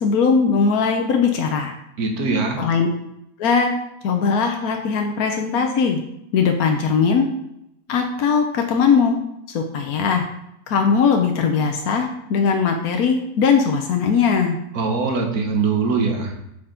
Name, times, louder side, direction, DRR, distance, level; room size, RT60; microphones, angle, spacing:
voice 1, 0.0-1.7 2.6-2.9 3.4-3.7 4.0-6.0 6.3-7.3 7.9-9.2 9.5-10.2 10.7-14.6, left 5 dB, 80° left, 3 dB, 1.3 m, -19 dB
voice 2, 2.0-2.6 14.7-16.4, right 4 dB, 85° right, 3 dB, 1.8 m, -22 dB
8.7 x 5.9 x 3.9 m, 0.80 s
omnidirectional pair, 1.6 m